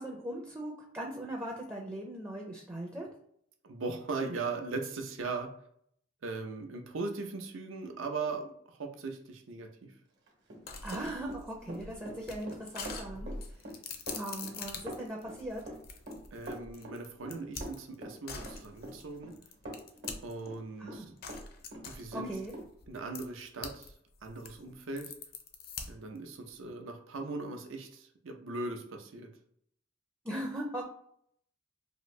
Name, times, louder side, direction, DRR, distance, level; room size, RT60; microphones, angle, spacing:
voice 1, 0.0-3.1 10.8-13.3 14.1-15.6 20.8-21.1 22.1-22.5 30.2-30.8, right 1 dB, 10° right, -1 dB, 0.4 m, -39 dB
voice 2, 3.6-5.5 6.2-9.9 16.3-19.4 20.2-21.1 21.9-22.4 22.9-23.9 24.2-25.1 25.9-29.3, right 3 dB, 85° right, 4 dB, 0.6 m, -39 dB
Run, 10.3-21.4 21.7-22.7, right 1 dB, 65° right, 1.0 m, -44 dB
sound 1, 10.7-20.5 21.2-23.9 24.2-26.2, left 4 dB, 50° left, 0.5 m, -44 dB
2.9 x 2.5 x 3.1 m, 0.67 s
head